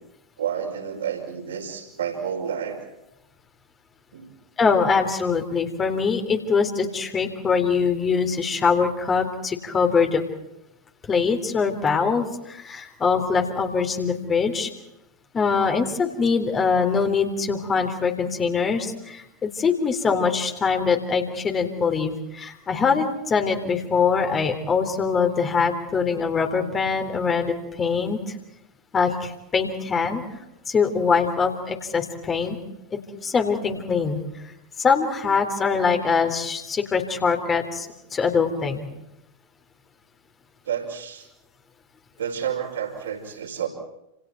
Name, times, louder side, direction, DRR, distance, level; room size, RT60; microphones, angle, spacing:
voice 1, 0.4-2.8 4.1-4.3 40.7-41.3 42.2-43.7, right 8 dB, 65° right, 4 dB, 5.5 m, -30 dB
voice 2, 4.6-10.2 11.1-14.7 15.3-28.3 28.9-30.2 30.7-32.6 32.9-34.2 34.8-37.9 38.1-38.8, left 5 dB, 20° left, 5 dB, 3.5 m, -23 dB
30.0 x 28.0 x 4.6 m, 0.85 s
figure-of-eight pair, 90°, 0 cm